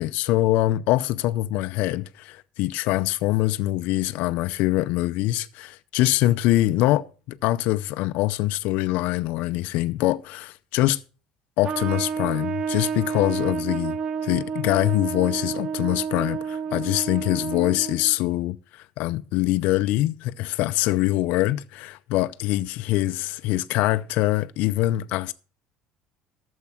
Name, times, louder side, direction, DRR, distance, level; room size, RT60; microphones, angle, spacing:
voice 1, 0.0-11.0 11.6-14.0 14.2-25.3, left 16 dB, 70° left, 0.6 m, -24 dB
Trumpet, 11.6-18.2, right 6 dB, 35° right, 0.6 m, -30 dB
12.0 x 7.3 x 5.8 m
cardioid pair, 140°, 3 cm